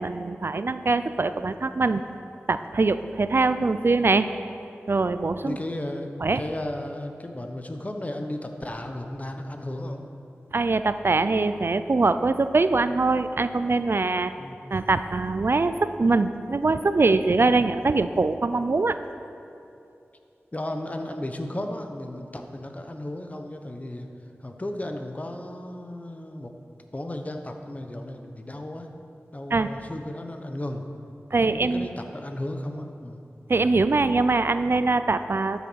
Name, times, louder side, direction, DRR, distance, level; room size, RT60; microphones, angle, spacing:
voice 1, 0.0-2.0 2.5-4.3 4.9-5.6 6.2-6.4 10.5-14.3 14.7-19.0 29.5-29.7 31.3-31.9 33.5-35.7, right 3 dB, 55° right, 11 dB, 0.4 m, -23 dB
voice 2, 5.4-10.0 14.4-14.6 20.5-24.1 24.4-26.5 26.9-28.9 29.3-30.9 31.4-33.2, left 1 dB, 30° left, 5 dB, 1.0 m, -34 dB
12.5 x 7.2 x 6.3 m, 2.7 s
wide cardioid pair, 60°, 5 cm